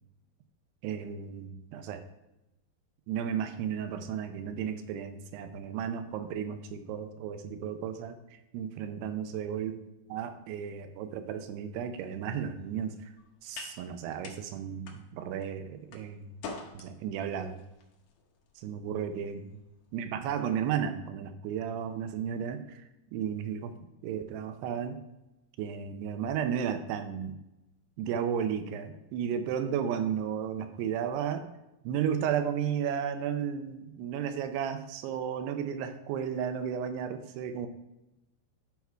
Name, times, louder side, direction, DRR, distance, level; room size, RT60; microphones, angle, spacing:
voice 1, 0.8-2.0 3.1-8.2 8.5-9.8 10.1-13.1 13.4-16.3 16.7-17.6 18.6-19.5 19.9-22.8 23.1-23.7 24.0-25.0 25.6-27.4 28.0-31.5 31.8-37.7, right 8 dB, 85° right, 9 dB, 2.7 m, -33 dB
sound 1, 12.0-20.4, left 4 dB, 75° left, 1.9 m, -49 dB
10.5 x 3.6 x 4.5 m, 0.95 s
omnidirectional pair, 4.7 m